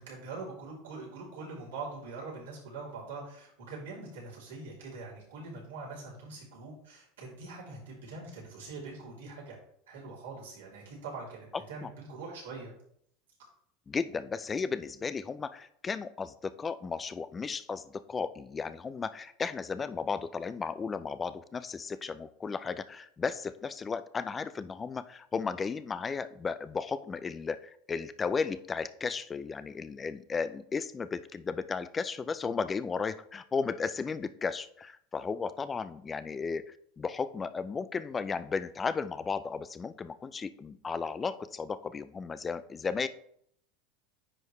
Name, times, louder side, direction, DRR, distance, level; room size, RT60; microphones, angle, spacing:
voice 1, 0.0-9.6 9.9-12.7, right 3 dB, 85° right, -6 dB, 3.3 m, -43 dB
voice 2, 13.9-43.1, left 5 dB, 25° left, 13 dB, 0.5 m, -34 dB
9.9 x 4.6 x 3.3 m, 0.68 s
hypercardioid pair, 90°, 0 cm